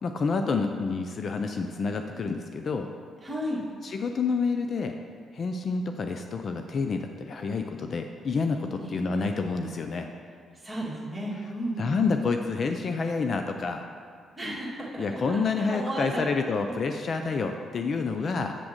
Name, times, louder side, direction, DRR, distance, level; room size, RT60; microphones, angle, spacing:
voice 1, 0.0-2.9 3.8-5.0 5.3-10.1 11.8-13.9 15.0-18.6, left 4 dB, 50° left, 5 dB, 0.4 m, -28 dB
voice 2, 3.2-3.6 8.8-8.9 10.5-11.9 14.4-16.2 16.6-16.7, right 1 dB, 10° right, -6 dB, 2.0 m, -34 dB
7.6 x 3.5 x 6.4 m, 2.1 s
cardioid pair, 90°, 0 cm